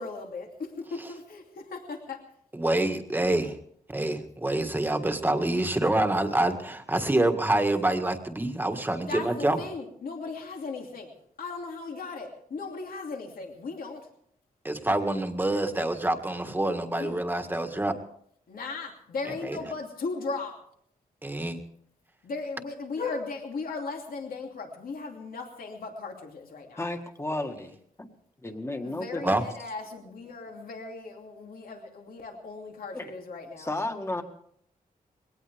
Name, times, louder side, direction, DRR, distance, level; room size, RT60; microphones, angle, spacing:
voice 1, 0.0-2.2 9.1-14.1 16.9-17.2 18.5-20.6 22.2-26.9 28.8-33.7, left 4 dB, 75° left, 1 dB, 2.9 m, -37 dB
voice 2, 2.5-3.5 3.9-9.6 14.6-17.9 19.3-19.6 21.2-21.6 29.2-29.4, right 1 dB, 15° right, 6 dB, 1.7 m, -26 dB
voice 3, 26.8-28.1 28.4-29.4 32.9-33.1 33.6-34.2, left 2 dB, 15° left, 5 dB, 1.9 m, -33 dB
21.5 x 18.5 x 3.5 m, 0.65 s
wide cardioid pair, 125°, 15 cm